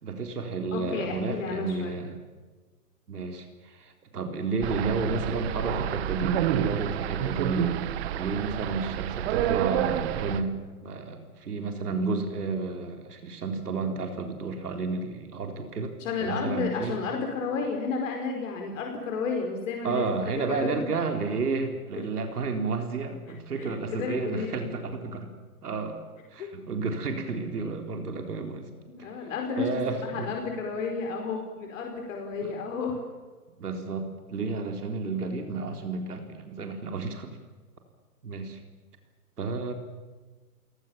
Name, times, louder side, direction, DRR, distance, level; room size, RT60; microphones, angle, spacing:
voice 1, 0.0-2.2 3.1-7.7 8.1-10.6 10.8-15.9 16.2-17.0 19.8-25.3 25.6-26.0 26.3-28.7 29.2-29.3 29.6-30.3 32.4-32.5 33.6-37.4 38.2-38.6 39.4-39.7, right 4 dB, 75° right, 5 dB, 4.0 m, -31 dB
voice 2, 0.7-1.9 16.0-20.1 20.4-20.8 23.6-24.7 26.4-26.5 28.9-33.0, left 4 dB, 55° left, 2 dB, 5.0 m, -32 dB
sound 1, 4.6-10.4, right 11 dB, 40° right, 1.6 m, -29 dB
29.5 x 18.0 x 7.2 m, 1.3 s
hypercardioid pair, 130°, 46 cm